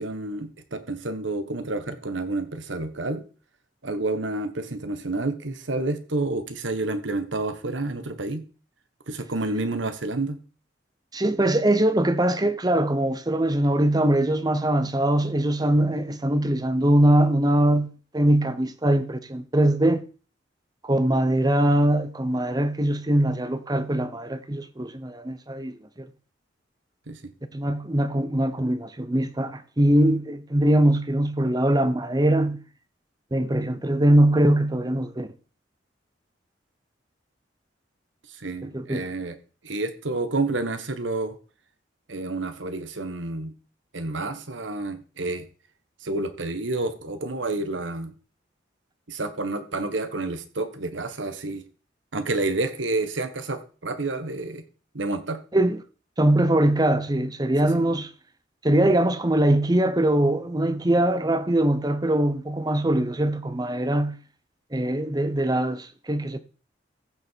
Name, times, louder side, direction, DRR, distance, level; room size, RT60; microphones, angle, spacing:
voice 1, 0.0-3.2 3.8-8.4 9.1-10.4 27.1-27.2 38.4-39.4 39.6-41.3 42.1-43.5 43.9-45.5 46.0-48.1 49.1-51.6 52.1-54.6 54.9-55.4, right 2 dB, 85° right, 1.4 m, -29 dB
voice 2, 11.1-20.0 20.8-26.1 27.5-32.6 33.3-35.3 38.6-39.0 55.5-55.8 56.2-58.1 58.6-64.2 64.7-66.4, right 1 dB, 20° right, 0.9 m, -22 dB
15.0 x 6.6 x 4.6 m
head